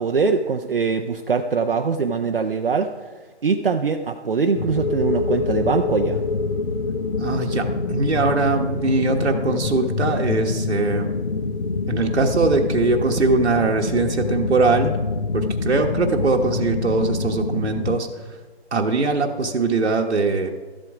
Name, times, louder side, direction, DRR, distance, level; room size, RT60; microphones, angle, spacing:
voice 1, 0.0-2.9 3.4-6.2, right 5 dB, 55° right, 5 dB, 0.7 m, -22 dB
sound 1, 4.5-18.0, left 4 dB, 45° left, 0.7 m, -25 dB
voice 2, 7.2-11.1 11.9-14.9 15.3-18.1 18.7-20.5, right 3 dB, 80° right, 2 dB, 1.3 m, -21 dB
13.0 x 7.7 x 4.9 m, 1.4 s
hypercardioid pair, 175°, 33 cm